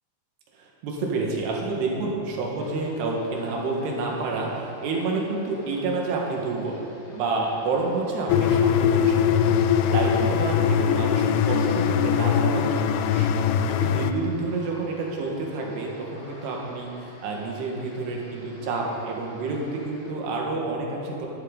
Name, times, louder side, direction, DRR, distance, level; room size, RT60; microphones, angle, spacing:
voice 1, 0.5-9.1 9.8-13.3 13.7-21.3, right 3 dB, 75° right, -1 dB, 3.7 m, -29 dB
sound 1, 2.6-20.1, left 1 dB, 45° left, 2.4 m, -46 dB
sound 2, 8.3-14.1, left 8 dB, 90° left, 2.8 m, -21 dB
14.0 x 12.0 x 4.0 m, 2.7 s
omnidirectional pair, 5.0 m